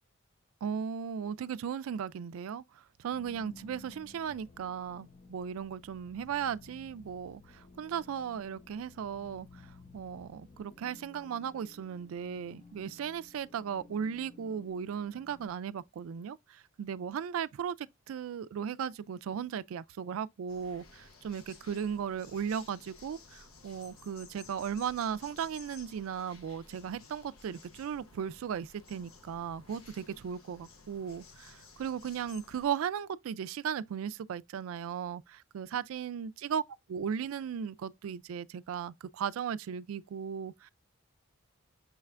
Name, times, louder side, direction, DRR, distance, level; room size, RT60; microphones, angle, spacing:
voice 1, 0.6-2.6 3.0-36.6 36.9-40.7, right 7 dB, 75° right, 0.3 m, -36 dB
sound 1, 3.1-15.5, left 3 dB, 35° left, 0.7 m, -55 dB
sound 2, 20.5-32.7, left 4 dB, 80° left, 0.8 m, -55 dB
6.2 x 3.3 x 2.4 m
head